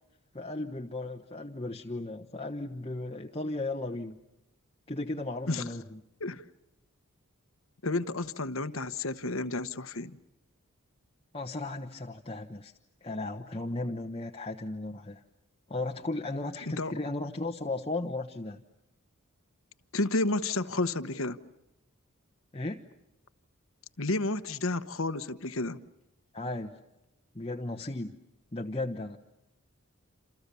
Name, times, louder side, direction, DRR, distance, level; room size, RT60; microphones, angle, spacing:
voice 1, 0.3-4.2 4.9-6.0 11.3-12.7 13.0-15.2 15.7-18.6 22.5-22.8 26.3-26.8 27.3-28.1 28.5-29.2, left 2 dB, 25° left, 1.1 m, -35 dB
voice 2, 7.8-10.2 16.8-16.9 19.9-21.4 24.0-25.8, left 2 dB, 70° left, 1.2 m, -31 dB
29.0 x 28.5 x 7.0 m
head